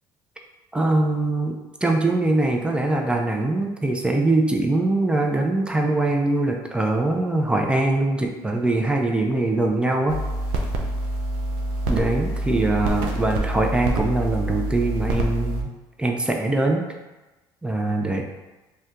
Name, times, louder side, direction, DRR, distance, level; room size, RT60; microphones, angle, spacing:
voice 1, 0.7-10.2 11.9-15.7 16.0-16.9 17.6-18.2, right 2 dB, 10° right, 1 dB, 0.5 m, -22 dB
sound 1, 10.1-15.6, right 1 dB, 80° right, 0.4 m, -26 dB
2.6 x 2.2 x 3.6 m, 1.1 s
hypercardioid pair, 70°, 10 cm